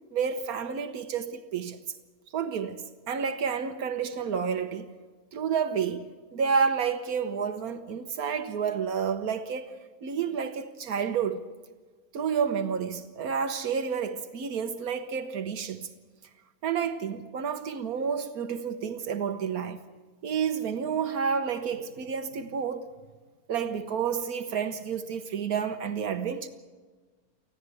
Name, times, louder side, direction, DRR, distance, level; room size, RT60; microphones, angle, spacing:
voice 1, 0.1-2.0 2.3-4.9 5.3-9.7 10.0-11.5 12.1-15.9 16.6-19.8 20.2-22.9 23.5-26.5, right 6 dB, 80° right, 1.5 m, -30 dB
25.0 x 15.5 x 8.3 m
omnidirectional pair, 1.5 m